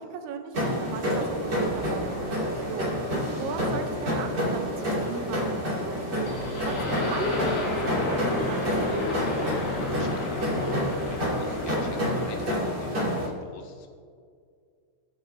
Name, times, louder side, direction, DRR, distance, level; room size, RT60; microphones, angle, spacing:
voice 1, 0.0-9.2, right 5 dB, 75° right, 6 dB, 2.5 m, -37 dB
sound 1, 0.5-13.3, equal, 30° right, 2.3 m, -29 dB
sound 2, 5.1-5.7 6.3-8.3 9.3-9.9 10.4-12.4, left 1 dB, 45° left, 5.0 m, -46 dB
sound 3, 6.2-12.6, left 2 dB, 70° left, 5.9 m, -31 dB
voice 2, 9.8-13.9, left 5 dB, 90° left, 3 dB, 3.8 m, -43 dB
22.5 x 8.8 x 2.8 m, 2.1 s
omnidirectional pair, 5.5 m